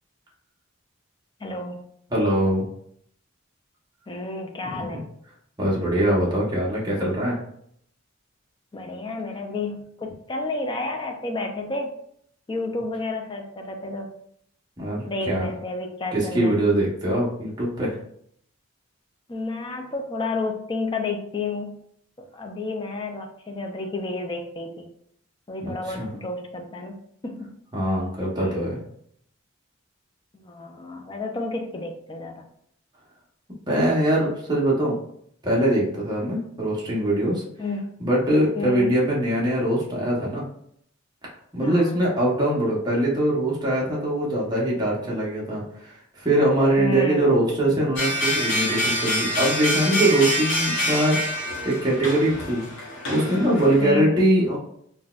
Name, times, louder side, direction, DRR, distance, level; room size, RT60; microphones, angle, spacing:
voice 1, 1.4-1.9 4.1-5.1 8.7-11.9 12.5-14.1 15.0-16.6 19.3-21.8 22.3-24.9 25.5-27.0 27.2-27.5 28.4-28.5 30.4-32.5 37.6-37.9 38.6-38.9 41.6-42.0 46.8-47.2 53.8-54.3, left 2 dB, 20° left, 3 dB, 0.4 m, -31 dB
voice 2, 2.1-2.6 4.8-5.0 5.6-7.4 14.8-15.5 16.1-17.9 25.8-26.1 27.7-28.8 33.7-35.0 35.4-37.4 38.0-40.4 41.5-51.2 51.6-52.6 53.1-54.6, right 1 dB, 20° right, -5 dB, 0.8 m, -22 dB
sound 1, 48.0-53.8, equal, 55° left, 0.8 m, -26 dB
3.8 x 2.2 x 2.3 m, 0.69 s
head